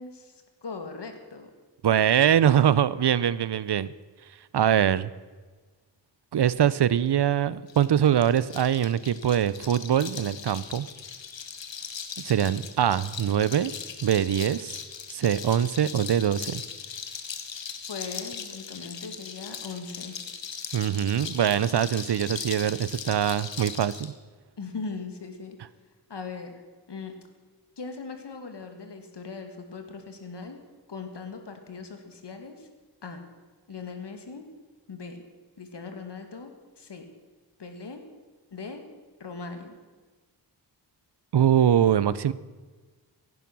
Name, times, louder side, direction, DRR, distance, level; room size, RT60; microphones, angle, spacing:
voice 1, 0.0-1.5 17.9-20.2 24.6-25.6 26.1-26.5 26.9-27.1 27.8-30.6 30.9-32.7 33.0-33.2 33.7-34.4 34.9-35.2 35.6-36.5 36.8-37.0 37.6-38.0 38.5-38.8 39.2-39.8, left 4 dB, 70° left, 6 dB, 2.2 m, -39 dB
voice 2, 1.8-3.9 4.5-5.1 6.3-10.8 12.2-13.7 14.0-14.8 15.1-16.6 20.7-24.1 41.3-42.3, right 9 dB, 65° right, 17 dB, 0.6 m, -23 dB
sound 1, 7.7-24.1, left 7 dB, 90° left, 1.3 m, -39 dB
16.5 x 11.0 x 6.1 m, 1.4 s
wide cardioid pair, 65°, 43 cm